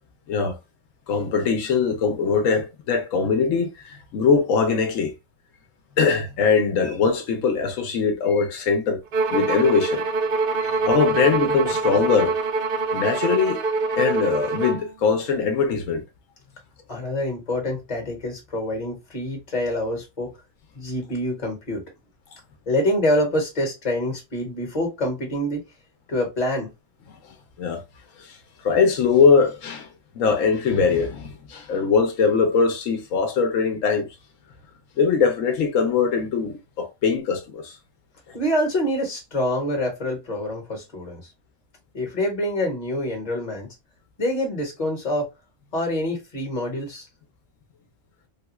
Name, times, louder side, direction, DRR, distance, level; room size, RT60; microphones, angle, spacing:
voice 1, 1.1-5.1 6.0-9.0 9.3-10.0 10.6-12.4 12.9-13.6 14.0-16.0 27.6-27.8 28.2-34.1 35.0-37.8 38.3-38.4, left 5 dB, 85° left, 1.0 m, -21 dB
Bowed string instrument, 9.1-14.9, right 4 dB, 55° right, 0.7 m, -24 dB
voice 2, 16.9-20.3 20.7-21.8 22.7-25.6 26.1-26.7 38.3-41.2 41.9-43.7 44.2-45.3 45.7-47.1, left 1 dB, 35° left, 1.3 m, -26 dB
3.4 x 2.3 x 2.9 m
omnidirectional pair, 1.3 m